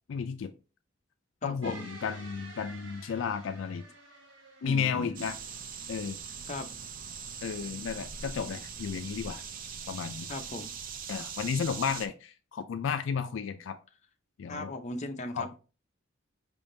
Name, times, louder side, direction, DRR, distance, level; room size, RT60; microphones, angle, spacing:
voice 1, 0.1-0.5 1.4-3.8 4.6-5.4 5.9-6.2 7.4-9.4 9.9-10.3 11.1-13.8 14.4-14.7 15.3-15.6, left 6 dB, 75° left, 8 dB, 0.4 m, -33 dB
voice 2, 1.4-1.9 4.6-5.3 6.5-6.7 10.3-10.7 14.5-15.6, left 2 dB, 35° left, 4 dB, 0.6 m, -38 dB
sound 1, 1.6-6.0, right 3 dB, 75° right, 1.1 m, -51 dB
sound 2, 5.2-12.1, right 6 dB, 45° right, 0.5 m, -41 dB
4.9 x 3.6 x 2.6 m, 0.33 s
head